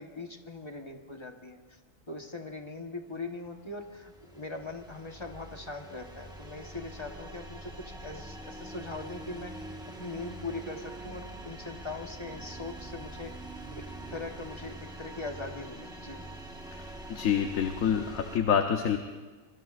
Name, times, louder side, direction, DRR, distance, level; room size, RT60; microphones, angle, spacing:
voice 1, 0.0-1.8 2.1-9.6 10.0-13.3 13.7-16.2, left 3 dB, 20° left, 3 dB, 1.2 m, -41 dB
sound 1, 3.4-18.4, right 1 dB, 5° right, 1.3 m, -44 dB
voice 2, 16.7-19.0, left 8 dB, 75° left, 5 dB, 1.3 m, -27 dB
25.0 x 23.0 x 2.5 m, 1.4 s
omnidirectional pair, 1.4 m